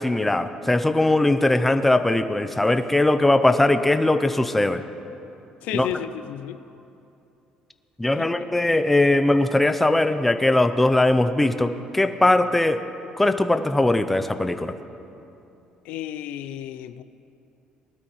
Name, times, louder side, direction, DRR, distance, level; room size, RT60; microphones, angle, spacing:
voice 1, 0.0-4.8 5.7-5.9 8.0-12.8 13.2-14.7, left 2 dB, 5° left, 0.4 m, -20 dB
voice 2, 5.6-6.6 8.2-8.3 15.9-17.0, left 11 dB, 80° left, 0.4 m, -32 dB
19.5 x 12.5 x 3.1 m
cardioid pair, 155°, 2 cm